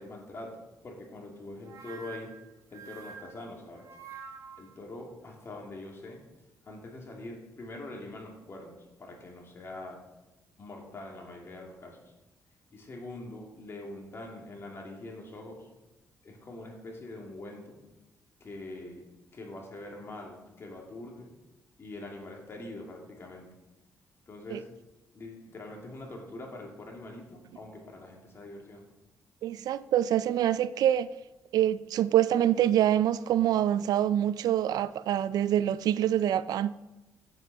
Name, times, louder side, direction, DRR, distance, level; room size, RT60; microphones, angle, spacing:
voice 1, 0.0-2.3 2.7-3.9 4.6-6.2 6.6-10.0 10.6-12.1 12.7-15.7 16.2-17.8 18.4-19.0 19.3-21.3 21.8-23.5 24.3-24.7 25.1-28.8, left 2 dB, 40° left, 2.5 m, -44 dB
sound 1, 1.6-4.7, right 7 dB, 55° right, 1.5 m, -47 dB
voice 2, 29.4-31.1 31.5-36.7, right 11 dB, 80° right, 0.4 m, -25 dB
8.1 x 7.7 x 5.4 m
cardioid pair, 115°, 7 cm